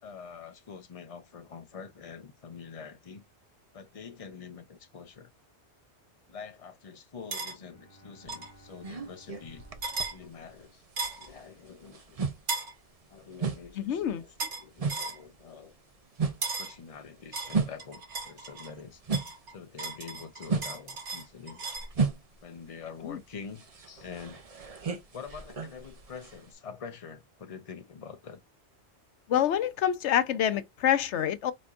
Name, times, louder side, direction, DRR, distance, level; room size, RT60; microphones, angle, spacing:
voice 1, 0.0-3.2 3.7-5.3 6.3-9.7 10.1-10.8 11.2-12.2 13.1-15.7 16.6-19.0 19.5-21.7 22.4-24.4 25.1-28.4, left 6 dB, 35° left, 0.8 m, -45 dB
sound 1, 7.3-7.5 8.3-8.5 9.8-10.2 11.0-11.3 12.5-12.7 14.4-14.6 14.9-15.2 16.4-16.8 17.3-18.7 19.1-21.9, right 3 dB, 85° right, 1.6 m, -36 dB
Bowed string instrument, 7.6-11.3, right 2 dB, 55° right, 1.8 m, -59 dB
sound 2, 8.3-10.7 10.9-19.6 19.9-26.5, right 4 dB, 40° right, 0.7 m, -34 dB
voice 2, 13.8-14.2 23.0-23.2 29.3-31.5, left 10 dB, 85° left, 1.0 m, -26 dB
4.3 x 4.2 x 2.4 m
omnidirectional pair, 1.2 m